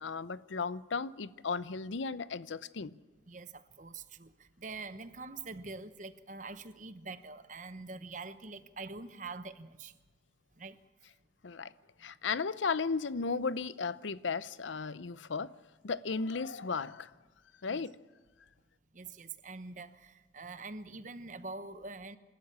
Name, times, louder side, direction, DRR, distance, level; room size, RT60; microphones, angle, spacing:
voice 1, 0.0-2.9 11.4-11.7 12.0-15.5 15.8-17.1 17.6-17.9, left 4 dB, 85° left, 0.7 m, -35 dB
voice 2, 3.3-10.0 10.6-10.8 17.7-17.8 18.9-22.2, right 3 dB, 40° right, 1.0 m, -45 dB
27.5 x 13.0 x 8.7 m
head